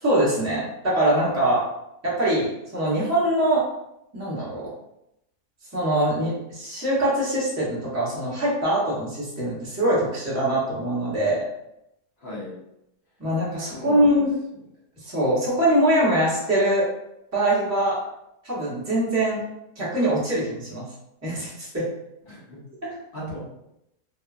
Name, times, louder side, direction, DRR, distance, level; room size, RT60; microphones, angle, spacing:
voice 1, 0.0-1.6 2.0-3.6 4.1-4.7 5.7-11.4 13.2-14.3 15.0-16.9 17.3-18.0 18.4-19.4 19.8-20.9 21.2-21.9, right 1 dB, 15° right, -7 dB, 0.6 m, -23 dB
voice 2, 12.2-12.5 13.6-14.2 22.3-22.6 23.1-23.4, equal, 60° left, -7 dB, 1.5 m, -36 dB
2.9 x 2.3 x 2.4 m, 0.82 s
omnidirectional pair, 1.7 m